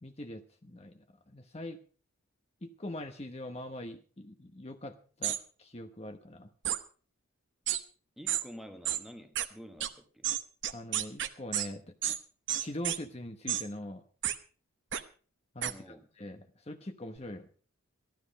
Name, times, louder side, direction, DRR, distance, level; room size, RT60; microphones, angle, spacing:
voice 1, 0.0-1.8 2.6-6.5 10.7-11.9 12.6-14.0 15.5-17.5, left 1 dB, 30° left, 0.9 m, -42 dB
sound 1, 5.2-5.4 6.6-6.8 7.7-7.8 8.3-8.4 8.8-9.0 9.4-9.5 9.8-9.9 10.2-11.7 12.0-12.2 12.5-13.0 13.5-13.6 14.2-14.4 14.9-15.0 15.6-15.7, right 11 dB, 55° right, 0.9 m, -31 dB
voice 2, 8.2-10.3 15.6-16.1, equal, ahead, 1.3 m, -49 dB
14.0 x 12.0 x 5.2 m
head